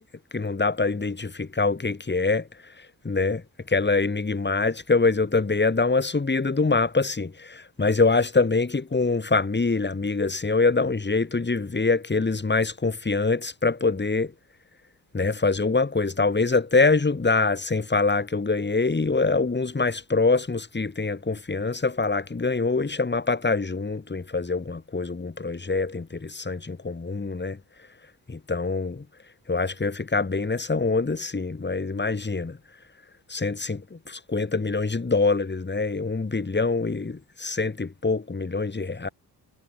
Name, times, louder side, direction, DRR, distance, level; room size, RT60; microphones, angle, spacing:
voice 1, 0.3-2.4 3.0-3.4 3.7-14.3 15.1-27.6 28.3-29.0 29.5-32.6 33.3-39.1, left 3 dB, 25° left, 4.7 m, -24 dB
supercardioid pair, 65°, 40 cm